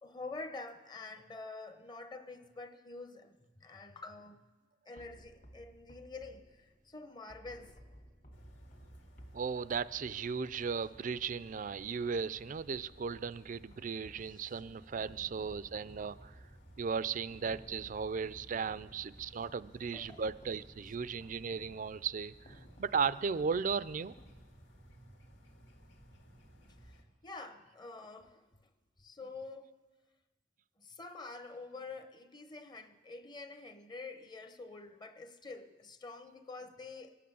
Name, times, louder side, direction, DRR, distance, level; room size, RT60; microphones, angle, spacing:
voice 1, 0.0-4.4 4.9-7.8 14.1-14.5 15.1-15.2 16.0-16.2 17.8-17.9 18.6-18.8 19.6-19.7 19.9-20.2 26.6-28.7 29.0-29.8 30.8-37.2, left 3 dB, 25° left, 0.8 m, -48 dB
sound 1, 5.0-12.1 12.5-14.5 14.9-24.9, equal, 45° left, 1.8 m, -59 dB
sound 2, 8.3-27.0, equal, 85° left, 2.3 m, -58 dB
voice 2, 9.3-16.4 16.8-24.1, right 5 dB, 45° right, 0.4 m, -36 dB
24.5 x 8.6 x 6.9 m
head